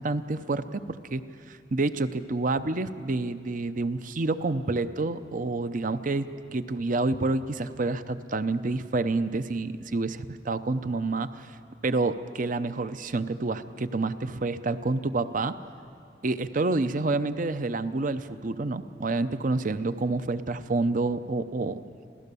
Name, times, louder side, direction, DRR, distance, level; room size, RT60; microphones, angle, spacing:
voice 1, 0.0-11.5 11.8-15.5 16.2-21.8, right 3 dB, 50° right, 12 dB, 0.7 m, -28 dB
27.0 x 16.5 x 6.9 m, 2.4 s
head